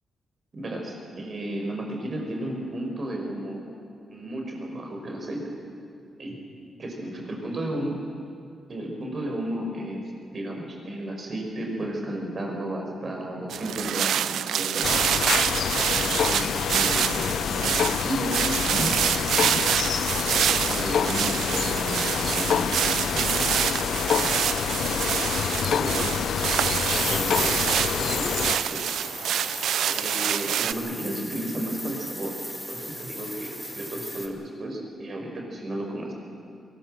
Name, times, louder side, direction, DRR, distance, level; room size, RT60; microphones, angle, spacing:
voice 1, 0.5-3.6 4.1-5.5 6.2-6.4 6.8-8.0 8.7-14.9 15.9-19.6 20.3-23.4 24.7-26.3 26.9-28.8 29.9-32.3 32.7-36.1, right 1 dB, 40° right, 1 dB, 5.3 m, -33 dB
sound 1, 13.5-30.7, right 10 dB, 85° right, 0.5 m, -27 dB
sound 2, 14.8-28.6, left 8 dB, 70° left, 0.5 m, -27 dB
sound 3, 26.7-34.3, equal, ahead, 2.2 m, -36 dB
22.0 x 19.5 x 7.8 m, 2.4 s
cardioid pair, 120°, 0 cm